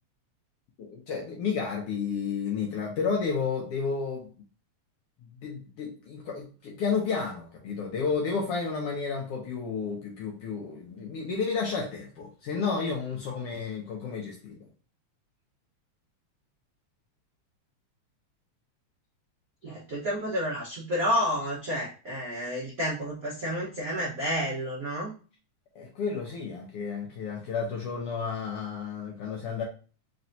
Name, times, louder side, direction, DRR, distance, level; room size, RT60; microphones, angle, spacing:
voice 1, 0.8-4.3 5.4-14.7 25.7-29.6, left 5 dB, 75° left, 1.4 m, -31 dB
voice 2, 19.6-25.1, equal, 80° right, 0.7 m, -30 dB
4.3 x 3.3 x 2.6 m
omnidirectional pair, 3.3 m